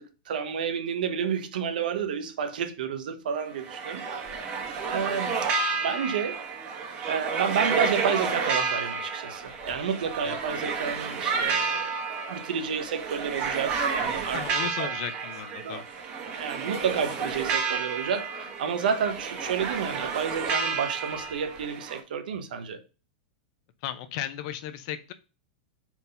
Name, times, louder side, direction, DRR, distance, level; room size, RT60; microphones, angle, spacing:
voice 1, 0.0-4.0 4.3-4.6 4.9-5.3 5.8-6.4 7.1-12.0 12.3-14.9 15.6-15.8 16.3-22.8, right 7 dB, 90° right, 1.0 m, -30 dB
sound 1, 3.4-22.0, right 5 dB, 30° right, 1.2 m, -31 dB
voice 2, 10.2-10.6 14.3-15.8 23.8-25.1, left 11 dB, 50° left, 0.6 m, -36 dB
4.5 x 3.9 x 5.4 m
supercardioid pair, 160°, 5 cm